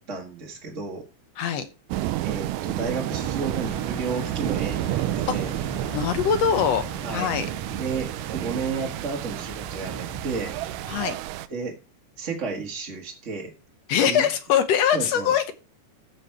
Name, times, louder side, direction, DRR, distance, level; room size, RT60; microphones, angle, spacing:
voice 1, 0.1-1.0 2.2-5.5 7.0-7.3 7.7-10.5 11.0-11.1 11.5-11.7 12.2-13.5 14.0-14.3 14.9-15.3, right 4 dB, 35° right, 1 dB, 1.4 m, -32 dB
voice 2, 1.4-1.7 5.3-5.4 5.9-6.9 7.1-7.5 10.9-11.2 13.9-15.5, left 8 dB, 70° left, 11 dB, 1.8 m, -22 dB
sound 1, 1.9-11.5, right 14 dB, 85° right, 2.2 m, -30 dB
sound 2, 3.1-11.1, equal, 10° right, 1.3 m, -40 dB
14.5 x 5.6 x 4.6 m, 0.31 s
omnidirectional pair, 3.7 m